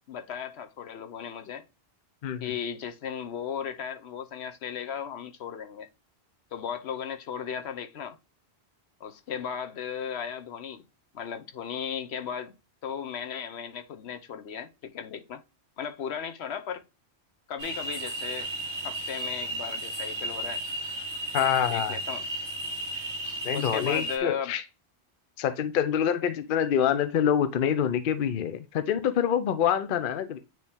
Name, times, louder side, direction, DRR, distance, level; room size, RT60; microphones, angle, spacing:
voice 1, 0.1-1.6 2.4-5.9 6.5-8.2 9.0-10.8 11.1-12.5 12.8-15.4 15.8-16.8 17.5-18.5 18.8-20.6 21.7-22.2 23.2-24.5, left 7 dB, 75° left, 1.0 m, -36 dB
sound 1, 17.6-24.2, right 1 dB, 25° right, 1.2 m, -34 dB
voice 2, 21.3-22.0 23.4-24.6 25.4-30.4, left 9 dB, 60° left, 0.7 m, -26 dB
9.2 x 3.1 x 3.5 m
omnidirectional pair, 1.1 m